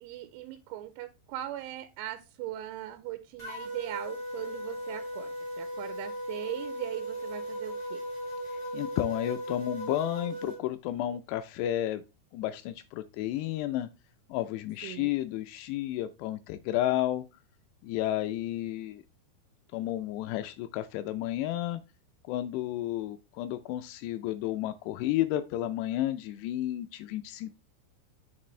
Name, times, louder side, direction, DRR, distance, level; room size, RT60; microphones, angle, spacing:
voice 1, 0.0-8.0 14.8-15.1, right 13 dB, 90° right, 3.1 m, -40 dB
sound 1, 3.4-10.6, right 1 dB, 45° left, 0.3 m, -37 dB
voice 2, 8.7-12.0 12.3-13.9 14.3-17.2 17.8-19.0 19.7-21.8 22.3-27.5, left 13 dB, 85° left, 2.4 m, -32 dB
8.6 x 6.8 x 3.2 m
omnidirectional pair, 5.4 m